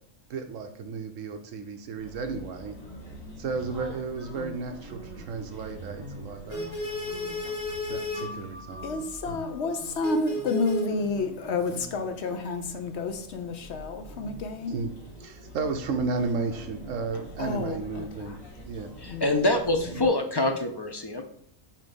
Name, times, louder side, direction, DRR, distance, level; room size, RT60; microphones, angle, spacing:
voice 1, 0.3-2.8 3.4-6.8 7.9-8.9 9.3-9.4 14.7-14.9 15.2-18.4 18.6-18.9 19.9-20.1, right 4 dB, 70° right, 6 dB, 1.1 m, -33 dB
sound 1, 2.0-20.1, equal, 80° left, 2.2 m, -40 dB
sound 2, 3.5-4.6 4.9-5.3 5.7-6.3 6.5-6.7 7.1-7.5 7.9-12.3, right 1 dB, 50° right, 1.1 m, -46 dB
voice 2, 8.8-14.8 17.4-18.3 19.1-19.3, left 3 dB, 60° left, 7 dB, 0.9 m, -30 dB
voice 3, 19.0-21.2, left 2 dB, 40° left, 4 dB, 0.3 m, -25 dB
7.3 x 2.9 x 5.2 m, 0.65 s
omnidirectional pair, 1.4 m